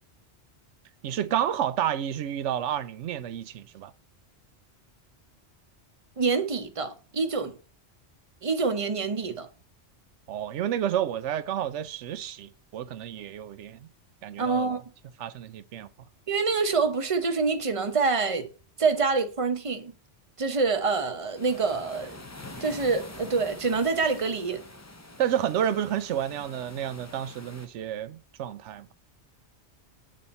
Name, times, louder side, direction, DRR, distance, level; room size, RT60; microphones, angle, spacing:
voice 1, 1.0-3.9 10.3-13.8 14.2-14.8 15.2-15.9 25.2-28.9, right 10 dB, 85° right, 0.9 m, -30 dB
voice 2, 6.2-7.6 8.4-9.5 14.4-14.8 16.3-18.5 18.8-19.9 20.4-22.2 22.6-24.6, right 4 dB, 30° right, 0.9 m, -26 dB
sound 1, 21.3-27.7, left 2 dB, 20° left, 0.5 m, -45 dB
7.6 x 4.1 x 4.1 m
omnidirectional pair, 1.2 m